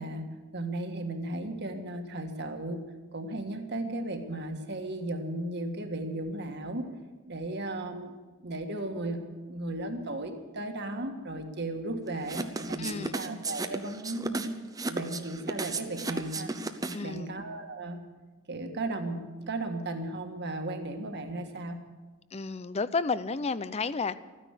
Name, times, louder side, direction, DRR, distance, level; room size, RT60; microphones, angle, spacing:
voice 1, 0.0-2.8 3.1-6.9 7.3-8.1 8.4-14.6 14.9-16.5 17.0-18.0 18.5-21.8, right 2 dB, 50° right, 1.7 m, -35 dB
sound 1, 12.2-17.2, right 3 dB, 15° right, 0.7 m, -34 dB
voice 2, 12.8-13.2 16.9-17.3 22.3-24.2, left 4 dB, 30° left, 0.5 m, -31 dB
14.0 x 10.0 x 8.3 m
head